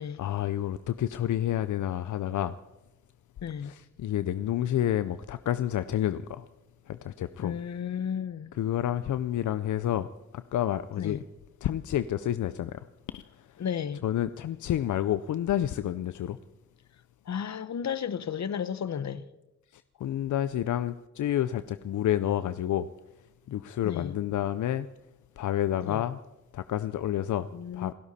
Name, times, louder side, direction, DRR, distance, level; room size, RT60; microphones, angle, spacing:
voice 1, 0.2-2.5 3.6-6.4 6.9-7.6 8.5-10.1 10.3-11.2 11.6-12.9 13.1-13.5 14.0-16.4 19.7-22.9 23.5-24.9 25.4-26.2 26.5-27.5 27.7-27.9, left 11 dB, 90° left, 0.5 m, -29 dB
voice 2, 7.4-8.5 11.0-11.2 13.6-14.0 17.3-19.2 23.8-24.1 25.8-26.0 27.5-27.9, left 8 dB, 70° left, 0.9 m, -33 dB
27.0 x 12.5 x 4.2 m
cardioid pair, 70°, 29 cm